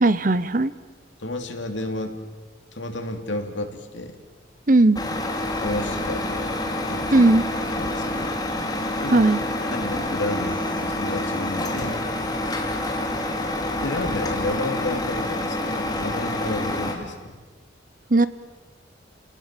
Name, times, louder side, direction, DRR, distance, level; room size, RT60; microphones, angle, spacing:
voice 1, 0.0-0.7 4.7-5.0 7.1-7.5 9.1-9.4 18.1-18.3, right 2 dB, 45° right, 15 dB, 0.9 m, -17 dB
voice 2, 1.2-2.2 2.7-4.2 5.6-6.5 6.8-7.3 7.8-8.7 9.0-9.2 9.6-12.0 13.7-17.4, left 1 dB, 75° left, 5 dB, 3.1 m, -31 dB
Truck, 4.9-16.9, left 1 dB, 20° left, 2.9 m, -27 dB
30.0 x 19.0 x 7.6 m, 1.3 s
head